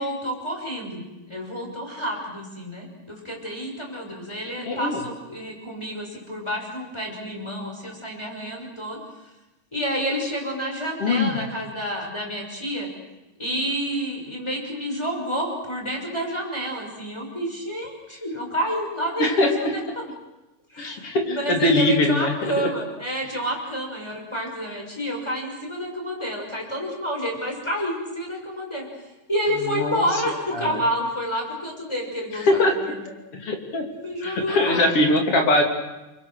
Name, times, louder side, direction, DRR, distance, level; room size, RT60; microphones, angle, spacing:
voice 1, 0.0-9.0 9.7-12.9 13.4-20.0 20.7-28.9 29.3-32.9 33.9-34.9, equal, 10° left, 1 dB, 6.1 m, -29 dB
voice 2, 4.7-5.0 11.0-11.4 19.2-19.8 20.8-22.7 29.6-30.0 30.5-30.8 32.4-33.0 33.3-33.9 34.2-35.6, left 1 dB, 45° left, 3 dB, 3.7 m, -22 dB
28.5 x 24.0 x 6.4 m, 1.0 s
omnidirectional pair, 3.8 m